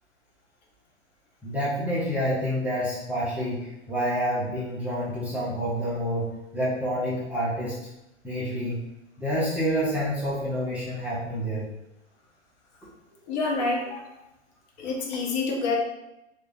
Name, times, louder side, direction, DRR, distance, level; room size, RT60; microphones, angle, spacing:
voice 1, 1.4-7.8 8.2-8.8 9.2-11.7, equal, 5° right, -10 dB, 0.5 m, -28 dB
voice 2, 13.3-14.1 14.8-15.8, left 3 dB, 40° left, -1 dB, 0.8 m, -27 dB
3.3 x 2.1 x 3.4 m, 0.91 s
figure-of-eight pair, 105°, 34 cm